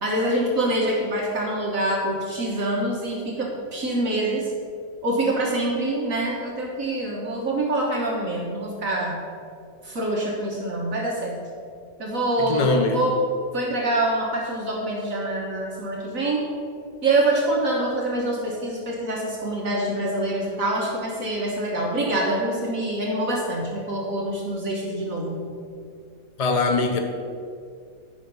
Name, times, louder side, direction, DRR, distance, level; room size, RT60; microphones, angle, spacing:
voice 1, 0.0-4.5 5.0-9.3 9.8-11.5 12.0-13.2 13.5-16.4 17.0-25.5, right 1 dB, 55° right, -2 dB, 1.5 m, -25 dB
voice 2, 12.4-13.0 26.4-27.0, left 3 dB, 80° left, 4 dB, 0.3 m, -22 dB
9.9 x 5.8 x 5.3 m, 2.3 s
omnidirectional pair, 1.9 m